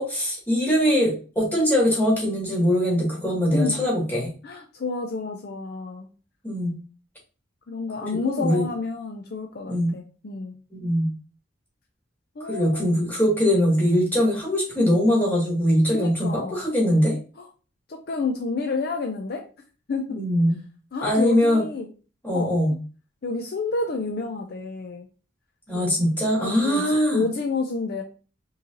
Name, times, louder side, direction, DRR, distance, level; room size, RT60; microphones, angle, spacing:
voice 1, 0.0-4.3 6.4-6.8 8.2-8.6 9.7-9.9 10.7-11.1 12.4-17.2 20.1-20.6 21.0-21.6 22.2-22.7 25.7-27.2, equal, 10° left, -5 dB, 1.9 m, -22 dB
voice 2, 3.5-3.8 4.4-6.1 7.7-10.6 12.4-12.9 15.9-16.6 17.4-17.5 17.9-19.4 19.9-20.0 20.9-21.9 22.3-22.5 23.2-25.1 25.7-26.0 26.4-28.0, left 3 dB, 55° left, 4 dB, 0.5 m, -29 dB
4.7 x 3.2 x 2.7 m, 0.36 s
head